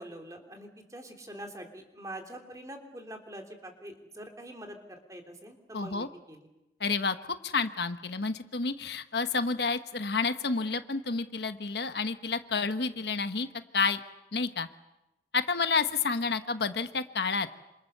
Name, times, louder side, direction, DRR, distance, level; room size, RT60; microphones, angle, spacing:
voice 1, 0.0-4.8 5.1-6.5, right 1 dB, 20° right, 4 dB, 3.0 m, -44 dB
voice 2, 5.7-6.1 6.8-7.2 7.4-13.5 13.7-14.0 14.3-14.7 15.3-17.5, left 4 dB, 70° left, 9 dB, 1.2 m, -29 dB
28.0 x 27.0 x 6.8 m, 0.95 s
head